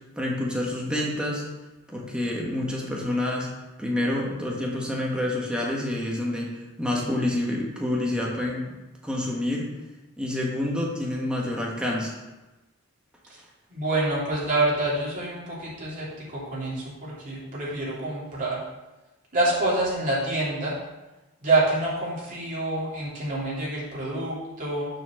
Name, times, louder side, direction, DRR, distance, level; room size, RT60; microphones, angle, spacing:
voice 1, 0.1-1.4 1.9-3.5 3.8-6.5 6.8-8.7 9.0-9.7 10.2-12.2, left 1 dB, 5° right, -3 dB, 1.4 m, -28 dB
voice 2, 13.7-16.1 16.3-18.6 19.3-20.8 21.4-24.9, right 2 dB, 40° right, -7 dB, 2.8 m, -27 dB
7.0 x 4.4 x 6.3 m, 1.1 s
head